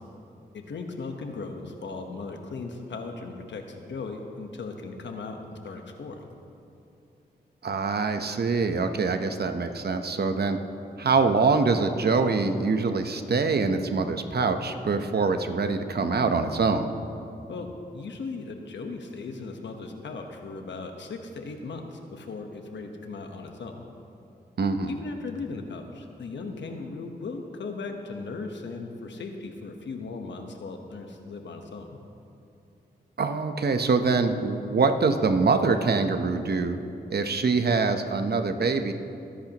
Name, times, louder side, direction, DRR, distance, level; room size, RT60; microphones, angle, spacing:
voice 1, 0.5-5.4 5.6-6.3 17.5-23.9 24.9-32.0, left 3 dB, 85° left, 4 dB, 1.2 m, -37 dB
voice 2, 7.6-10.6 11.0-16.9 24.6-24.9 33.2-36.8 37.1-38.9, right 4 dB, 60° right, 7 dB, 0.9 m, -24 dB
23.0 x 10.5 x 3.0 m, 2.7 s
cardioid pair, 55°, 18 cm